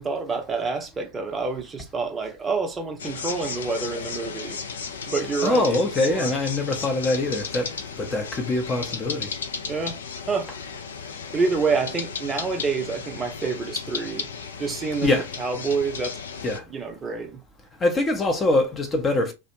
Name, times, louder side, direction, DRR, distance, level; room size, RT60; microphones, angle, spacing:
voice 1, 0.0-4.6 5.1-6.3 9.7-10.0 10.3-10.5 11.3-14.3 14.6-16.2 16.7-17.4, right 4 dB, 20° right, 0.6 m, -27 dB
sound 1, 3.0-16.6, left 5 dB, 65° left, 0.4 m, -35 dB
voice 2, 5.4-7.7 8.0-9.3 15.0-15.3 16.4-16.6 17.8-19.3, left 2 dB, 20° left, 0.6 m, -23 dB
2.4 x 2.0 x 2.9 m
figure-of-eight pair, 90°, 0 cm